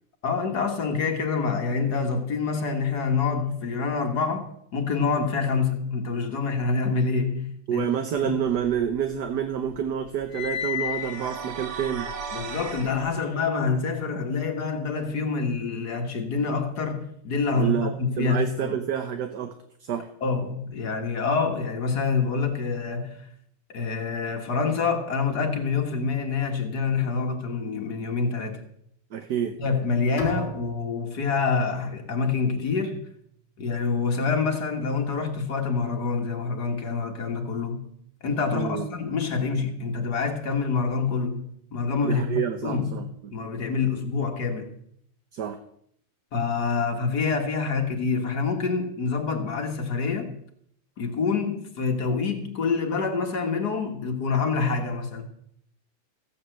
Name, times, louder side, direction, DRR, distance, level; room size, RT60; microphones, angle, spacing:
voice 1, 0.2-7.9 8.2-8.3 12.3-18.8 20.2-23.3 23.7-28.6 29.6-33.1 33.6-37.9 38.2-44.7 46.3-50.4 51.0-55.2, left 4 dB, 50° left, 1.9 m, -26 dB
voice 2, 7.7-12.1 17.6-19.5 19.9-20.1 29.1-29.5 38.5-38.9 42.0-43.3 45.3-45.6, right 8 dB, 55° right, 1.4 m, -28 dB
sound 1, 8.3-9.4 9.7-13.1, left 10 dB, 75° left, 2.3 m, -35 dB
sound 2, 10.8-12.9, right 6 dB, 80° right, 2.4 m, -36 dB
Bowed string instrument, 30.2-33.2, equal, 30° left, 2.2 m, -38 dB
15.0 x 8.6 x 7.8 m
omnidirectional pair, 2.4 m